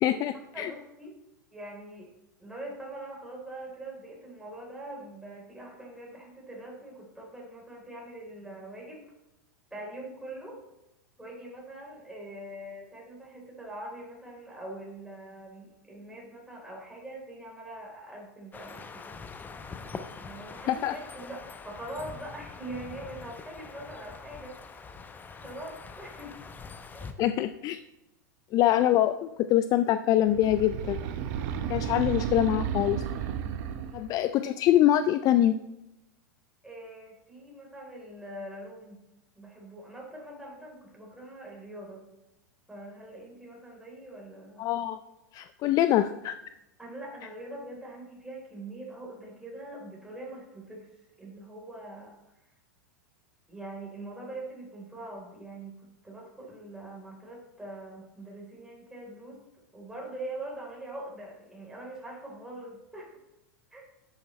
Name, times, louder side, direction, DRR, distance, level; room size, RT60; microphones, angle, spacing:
voice 1, 0.0-0.7 20.7-20.9 27.2-27.8 28.5-31.0 31.7-33.0 33.9-35.5 44.6-45.0 45.3-46.4, left 12 dB, 40° left, 11 dB, 0.4 m, -24 dB
voice 2, 0.5-1.2 1.5-2.1 2.4-9.1 9.7-10.6 11.2-19.2 20.2-24.8 25.3-26.3 26.9-27.1 33.8-34.1 36.6-39.0 39.3-42.0 42.7-44.7 46.8-52.1 53.5-59.4 59.7-63.2 63.7-63.8, right 1 dB, 5° right, -3 dB, 3.8 m, -43 dB
sound 1, 18.5-27.1, left 4 dB, 20° left, 0.7 m, -44 dB
sound 2, 30.2-34.1, right 8 dB, 55° right, 0.9 m, -33 dB
10.5 x 8.5 x 3.2 m, 0.92 s
hypercardioid pair, 105°, 10 cm